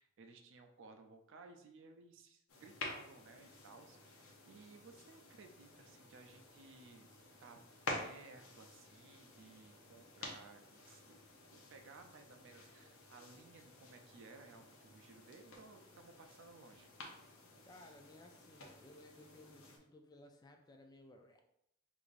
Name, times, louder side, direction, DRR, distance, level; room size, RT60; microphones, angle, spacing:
voice 1, 0.0-7.1 7.4-7.6 7.9-11.2 11.5-16.9, right 3 dB, 65° right, 6 dB, 0.4 m, -58 dB
sound 1, 2.5-19.8, left 2 dB, 90° left, 0.8 m, -51 dB
voice 2, 17.6-21.4, left 1 dB, 20° left, 4 dB, 0.4 m, -59 dB
4.7 x 2.6 x 2.5 m, 0.76 s
head